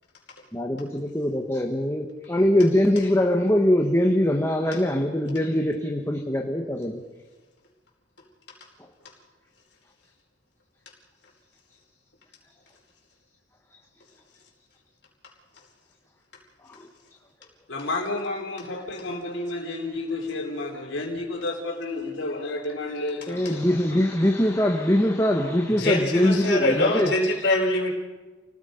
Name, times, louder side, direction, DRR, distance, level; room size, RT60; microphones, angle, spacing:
voice 1, 0.5-7.0 16.7-16.9 23.3-27.1, left 1 dB, 15° left, 1 dB, 1.3 m, -22 dB
voice 2, 17.7-23.8, left 2 dB, 80° left, 0 dB, 3.8 m, -31 dB
voice 3, 25.7-27.9, left 2 dB, 60° left, -1 dB, 4.9 m, -23 dB
29.5 x 19.0 x 5.2 m, 1.3 s
head